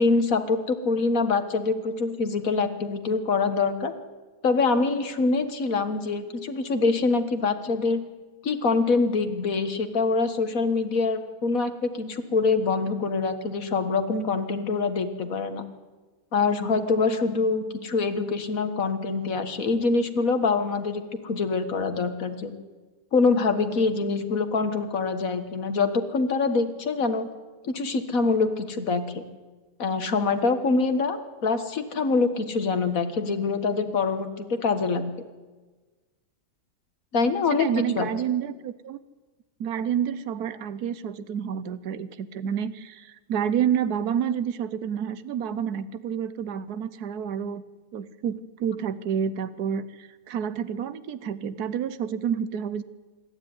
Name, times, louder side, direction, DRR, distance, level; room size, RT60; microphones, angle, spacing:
voice 1, 0.0-3.9 4.4-8.0 8.4-15.6 16.3-22.5 23.1-27.3 27.6-29.2 29.8-35.1 37.1-38.1, left 4 dB, 65° left, 8 dB, 2.0 m, -25 dB
voice 2, 37.5-39.0 39.6-47.6 47.9-52.8, right 8 dB, 85° right, 14 dB, 1.4 m, -29 dB
26.0 x 12.5 x 9.7 m, 1.3 s
omnidirectional pair, 1.6 m